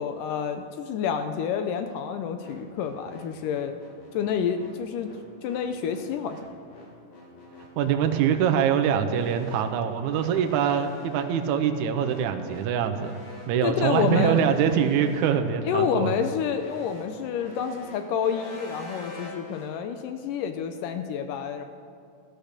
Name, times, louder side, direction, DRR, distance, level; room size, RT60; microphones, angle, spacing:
voice 1, 0.0-3.8 4.1-5.1 5.4-6.4 13.6-14.4 15.6-21.6, left 7 dB, 75° left, 8 dB, 2.1 m, -28 dB
sound 1, 2.4-19.7, left 2 dB, 60° left, 3.9 m, -46 dB
voice 2, 7.8-13.2 13.5-16.1, right 8 dB, 70° right, 7 dB, 2.0 m, -24 dB
14.5 x 12.0 x 6.7 m, 2.4 s
omnidirectional pair, 4.1 m